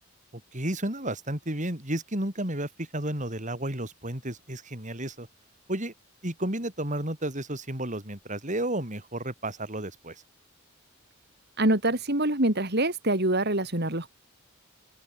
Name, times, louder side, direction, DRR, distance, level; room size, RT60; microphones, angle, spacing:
voice 1, 0.5-5.3 5.7-5.9 6.2-10.2, right 1 dB, 35° right, 6.3 m, -32 dB
voice 2, 11.6-14.1, right 1 dB, 50° right, 4.9 m, -25 dB
open air
head